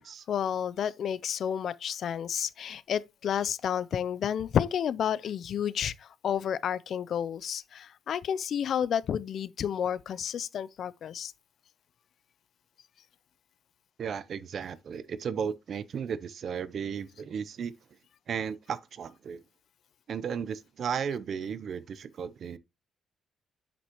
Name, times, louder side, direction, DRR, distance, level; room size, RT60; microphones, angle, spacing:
voice 1, 0.3-5.9 6.2-11.3, left 8 dB, 65° left, 0.5 m, -30 dB
voice 2, 14.0-17.7 18.3-19.4 20.1-22.6, right 7 dB, 55° right, 0.7 m, -35 dB
8.0 x 6.3 x 3.0 m
cardioid pair, 90°, 0 cm